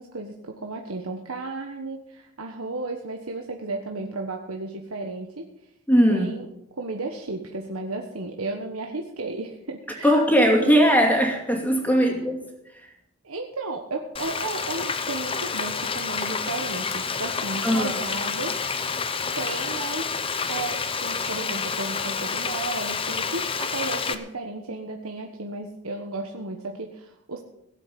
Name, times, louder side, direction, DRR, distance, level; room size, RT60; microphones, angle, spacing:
voice 1, 0.0-5.5 6.1-6.5 6.8-10.8 11.9-12.2 13.2-18.5 19.3-20.1 20.5-27.4, right 3 dB, 90° right, 2 dB, 1.4 m, -34 dB
voice 2, 5.9-6.3 10.0-12.4 17.6-18.0, equal, 10° left, 2 dB, 2.5 m, -19 dB
Frying (food), 14.2-24.2, left 5 dB, 25° left, 0.8 m, -29 dB
17.5 x 7.8 x 7.8 m, 0.82 s
head